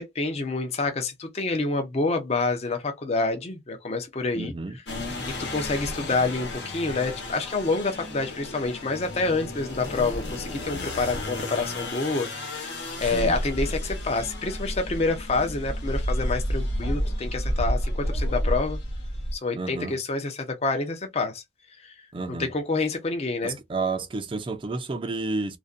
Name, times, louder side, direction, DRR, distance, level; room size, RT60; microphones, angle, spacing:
voice 1, 0.0-4.5 5.4-12.7 13.0-18.8 19.3-21.4 21.8-21.9 22.3-23.6, left 3 dB, 35° left, 0.5 m, -28 dB
voice 2, 4.3-4.8 13.1-13.4 19.5-20.0 22.1-22.5 23.4-25.6, right 3 dB, 30° right, 0.4 m, -30 dB
sound 1, 4.9-19.3, equal, 75° left, 1.0 m, -31 dB
2.5 x 2.1 x 2.4 m
head